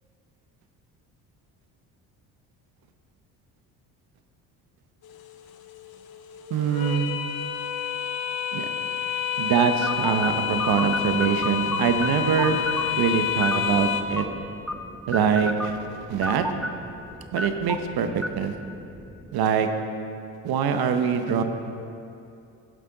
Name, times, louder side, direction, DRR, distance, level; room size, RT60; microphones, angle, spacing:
sound 1, 5.0-14.0, left 9 dB, 60° left, 0.9 m, -29 dB
voice 1, 6.5-7.1 8.5-8.7 9.4-12.6 13.0-14.2 15.1-16.4 17.3-18.5 19.3-19.7 20.4-21.4, right 7 dB, 60° right, 7 dB, 1.0 m, -24 dB
sound 2, 9.8-19.3, equal, ahead, 0.5 m, -34 dB
11.5 x 8.1 x 3.9 m, 2.6 s
supercardioid pair, 75°, 42 cm